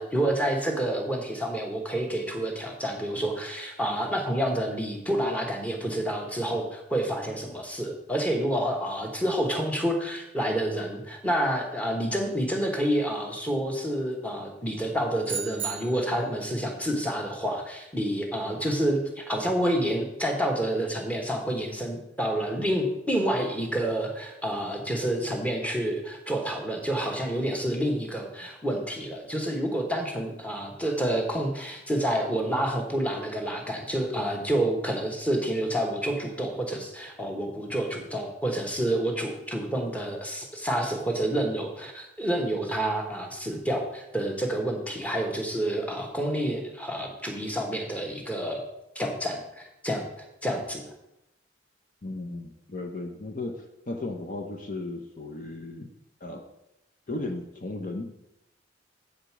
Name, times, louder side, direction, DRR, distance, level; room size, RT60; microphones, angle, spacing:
voice 1, 0.0-48.6 48.9-50.9, right 1 dB, 10° left, 2 dB, 1.2 m, -28 dB
sound 1, 15.2-16.4, right 7 dB, 10° right, 0.9 m, -35 dB
voice 2, 52.0-55.9 56.2-56.4 57.1-58.1, left 2 dB, 45° left, 3 dB, 0.8 m, -35 dB
8.1 x 5.1 x 6.0 m, 0.85 s
head